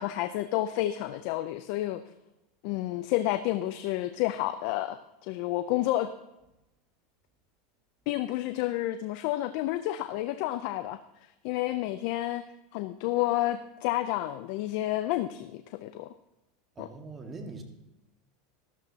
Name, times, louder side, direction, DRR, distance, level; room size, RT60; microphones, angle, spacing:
voice 1, 0.0-2.0 2.6-6.1 8.1-11.0 11.4-12.5 12.7-16.1 16.8-16.9, left 15 dB, 65° left, 10 dB, 0.5 m, -30 dB
voice 2, 16.8-17.6, right 3 dB, 25° right, 4 dB, 1.8 m, -42 dB
13.0 x 13.0 x 2.9 m, 0.94 s
supercardioid pair, 125°, 0 cm